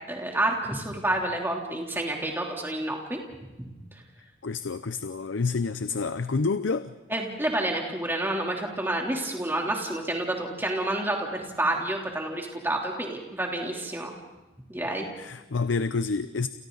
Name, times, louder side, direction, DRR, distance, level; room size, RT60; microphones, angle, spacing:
voice 1, 0.1-3.2 3.6-3.7 7.1-14.1 14.7-15.1, right 1 dB, 10° right, 0 dB, 3.2 m, -29 dB
voice 2, 4.4-6.9 15.2-16.5, left 4 dB, 90° left, 12 dB, 0.7 m, -28 dB
30.0 x 28.5 x 4.0 m, 1.1 s
head